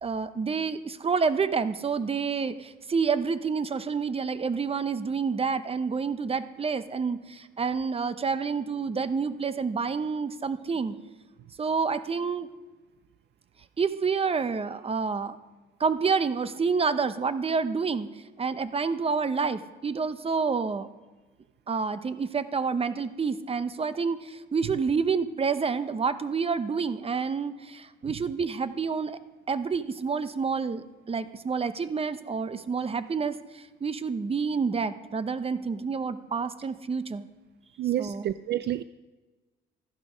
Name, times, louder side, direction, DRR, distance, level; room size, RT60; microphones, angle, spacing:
voice 1, 0.0-10.9 11.6-12.5 13.8-15.4 15.8-18.1 18.4-20.9 21.7-29.2 29.5-37.3 38.0-38.3, right 5 dB, 30° right, 12 dB, 0.8 m, -28 dB
voice 2, 37.8-38.8, right 12 dB, 60° right, 14 dB, 0.4 m, -29 dB
14.0 x 11.5 x 5.1 m, 1.3 s
cardioid pair, 90°, 20 cm